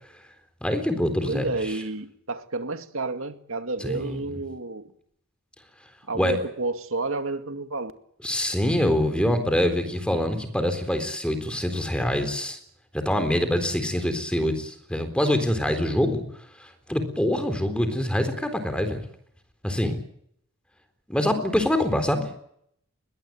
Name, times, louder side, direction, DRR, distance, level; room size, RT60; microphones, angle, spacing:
voice 1, 0.6-1.5 3.8-4.2 6.1-6.4 8.2-12.6 12.9-16.2 16.6-19.0 19.6-20.0 21.1-22.2, left 1 dB, 5° left, 3.8 m, -25 dB
voice 2, 1.3-4.9 6.1-7.9, right 3 dB, 65° right, 2.3 m, -30 dB
21.5 x 20.0 x 9.5 m
head